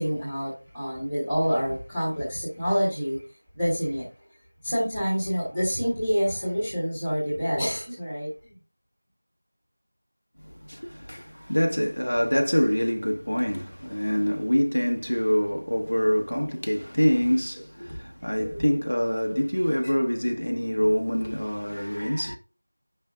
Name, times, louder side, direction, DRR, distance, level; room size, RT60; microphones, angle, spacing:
voice 1, 0.0-3.2 3.5-4.1 4.6-8.3 18.4-18.7, equal, 5° left, 1.4 m, -27 dB
voice 2, 10.5-22.4, equal, 70° left, 1.2 m, -25 dB
9.8 x 5.6 x 2.4 m
figure-of-eight pair, 175°, 0 cm